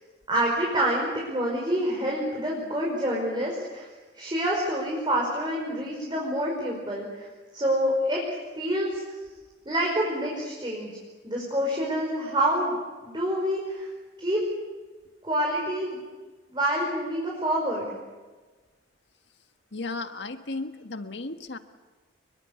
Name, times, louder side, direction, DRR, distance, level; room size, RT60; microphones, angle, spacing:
voice 1, 0.3-3.9 4.1-7.3 7.5-8.2 8.6-9.0 9.7-10.9 11.2-12.8 13.0-13.9 14.2-14.4 15.2-16.0 16.5-17.9, right 1 dB, 25° right, -2 dB, 5.4 m, -27 dB
voice 2, 19.7-21.6, left 3 dB, 65° left, 7 dB, 1.6 m, -34 dB
28.5 x 22.5 x 8.3 m, 1.3 s
head